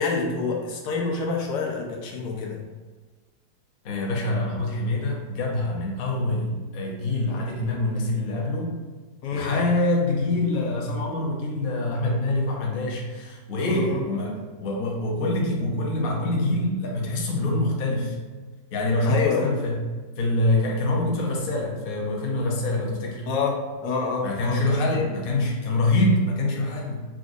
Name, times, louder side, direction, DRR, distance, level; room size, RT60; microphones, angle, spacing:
voice 1, 0.0-2.6 9.2-9.6 13.6-14.0 19.1-19.6 23.3-24.6 24.9-25.0, left 4 dB, 80° left, -1 dB, 1.3 m, -27 dB
voice 2, 3.8-8.8 9.3-18.2 18.7-19.9 20.2-23.3 24.2-27.1, left 2 dB, 50° left, -1 dB, 0.7 m, -25 dB
6.0 x 2.5 x 2.6 m, 1.4 s
omnidirectional pair, 1.7 m